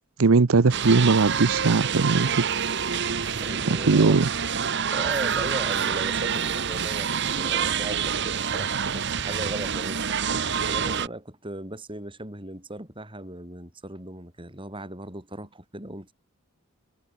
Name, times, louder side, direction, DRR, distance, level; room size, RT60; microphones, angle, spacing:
voice 1, 0.2-2.3 3.7-4.3, right 4 dB, 80° right, 0.7 m, -19 dB
sound 1, 0.7-11.1, right 7 dB, 55° right, 1.2 m, -27 dB
voice 2, 3.3-4.3 4.9-7.1 7.4-10.2 10.7-16.1, right 1 dB, 25° right, 6.1 m, -37 dB
head